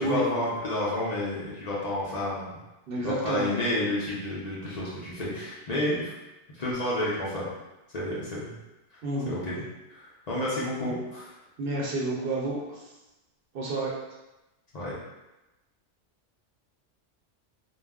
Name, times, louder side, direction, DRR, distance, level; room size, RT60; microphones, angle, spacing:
voice 1, 0.0-2.6 3.0-6.1 6.5-7.5 7.9-8.5 8.9-9.0 9.3-11.4 14.7-14.9, left 1 dB, 50° left, -6 dB, 0.5 m, -30 dB
voice 2, 2.9-3.5 9.0-9.3 11.6-12.8 13.5-13.9, right 2 dB, 60° right, -4 dB, 0.7 m, -29 dB
2.3 x 2.0 x 3.4 m, 1.0 s
omnidirectional pair, 1.2 m